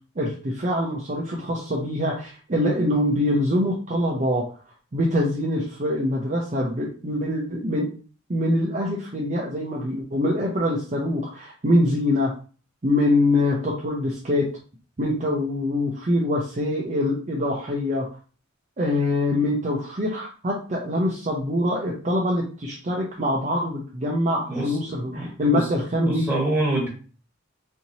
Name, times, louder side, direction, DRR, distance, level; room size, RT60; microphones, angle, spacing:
voice 1, 0.2-4.5 4.9-7.9 8.3-12.3 12.8-14.5 15.0-18.1 18.8-26.3, left 1 dB, 35° right, -2 dB, 0.6 m, -24 dB
voice 2, 25.1-25.7 26.0-26.9, right 2 dB, 10° right, -5 dB, 1.9 m, -26 dB
4.4 x 2.8 x 2.8 m, 0.38 s
head